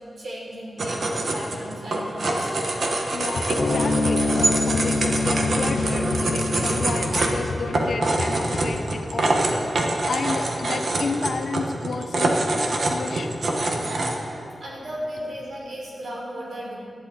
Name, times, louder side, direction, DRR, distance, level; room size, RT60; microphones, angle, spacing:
voice 1, 0.0-2.5 14.6-16.8, equal, 65° right, -3 dB, 3.8 m, -35 dB
sound 1, 0.8-14.1, right 2 dB, 50° right, 1.4 m, -25 dB
voice 2, 3.1-9.4 10.1-13.4, left 4 dB, 60° left, 6 dB, 0.8 m, -32 dB
sound 2, 3.4-3.5 3.9-4.8 5.2-6.3 6.6-8.7, left 3 dB, 85° left, 1.2 m, -32 dB
sound 3, 3.6-10.2, left 3 dB, 20° left, 2.7 m, -27 dB
19.0 x 12.0 x 4.3 m, 2.6 s
wide cardioid pair, 165°, 0 cm